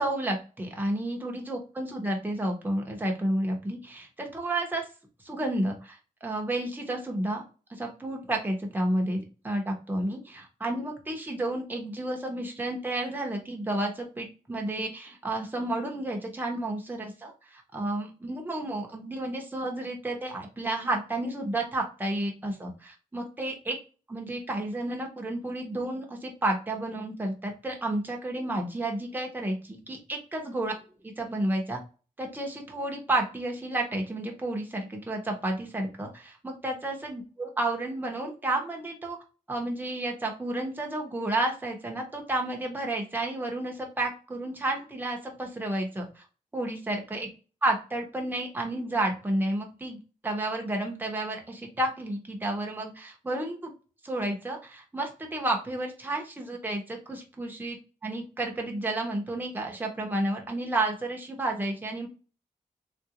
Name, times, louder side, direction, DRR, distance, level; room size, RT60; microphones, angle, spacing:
voice 1, 0.0-4.9 5.2-7.4 7.7-23.8 24.1-30.7 31.2-31.8 32.2-39.2 39.5-46.2 46.5-47.3 47.6-50.0 50.2-53.7 54.0-62.1, right 1 dB, 15° right, 1 dB, 0.7 m, -31 dB
3.6 x 2.4 x 2.8 m, 0.35 s
wide cardioid pair, 175°, 14 cm